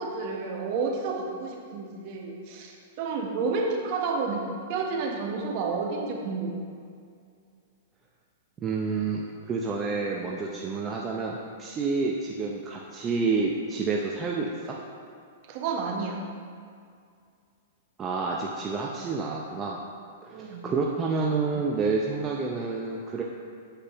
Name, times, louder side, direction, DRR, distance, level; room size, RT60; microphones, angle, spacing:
voice 1, 0.0-4.4 4.7-6.6 15.5-16.2 20.3-20.6, right 4 dB, 50° right, 1 dB, 1.1 m, -30 dB
voice 2, 8.6-14.8 18.0-19.8 20.2-23.2, right 4 dB, 25° right, -2 dB, 0.6 m, -29 dB
7.5 x 6.6 x 3.0 m, 2.3 s
hypercardioid pair, 125°, 0 cm